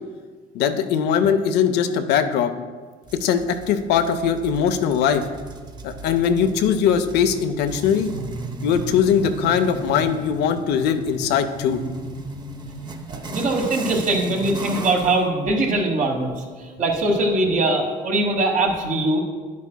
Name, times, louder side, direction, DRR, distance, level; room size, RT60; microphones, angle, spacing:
voice 1, 0.5-2.5 3.1-5.3 5.8-8.1 8.6-11.8, left 7 dB, 80° left, 9 dB, 0.5 m, -20 dB
sound 1, 3.1-15.2, right 2 dB, 25° right, 0.7 m, -35 dB
voice 2, 13.1-19.2, right 2 dB, 50° right, 2 dB, 1.3 m, -22 dB
10.0 x 8.3 x 2.2 m, 1.5 s
cardioid pair, 110°, 17 cm